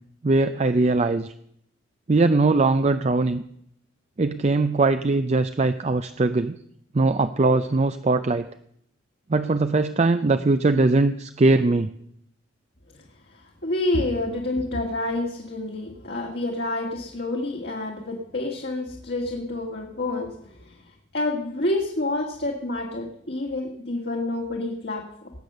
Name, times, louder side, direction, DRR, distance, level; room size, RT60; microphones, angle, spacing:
voice 1, 0.2-1.3 2.1-3.4 4.2-6.6 6.9-8.5 9.3-11.9, right 3 dB, 35° right, 10 dB, 0.5 m, -21 dB
voice 2, 13.3-20.8 21.1-25.3, left 2 dB, 55° left, 0 dB, 1.8 m, -28 dB
18.5 x 8.0 x 6.7 m, 0.72 s
head